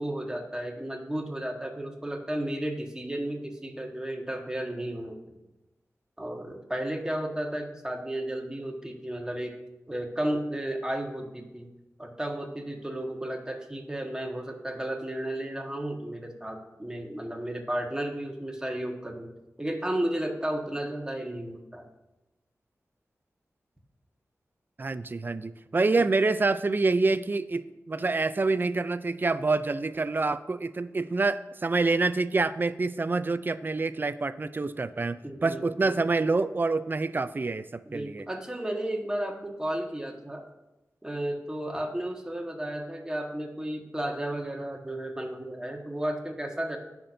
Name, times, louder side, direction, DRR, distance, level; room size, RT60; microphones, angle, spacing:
voice 1, 0.0-5.2 6.2-9.5 9.9-11.7 12.0-19.3 19.6-21.8 35.2-36.0 37.9-40.4 41.0-46.8, right 1 dB, 15° right, 1 dB, 1.4 m, -33 dB
voice 2, 24.8-27.6 27.9-38.2, right 3 dB, 35° right, 13 dB, 0.4 m, -27 dB
16.5 x 6.0 x 2.7 m, 1.0 s
wide cardioid pair, 90°, 6 cm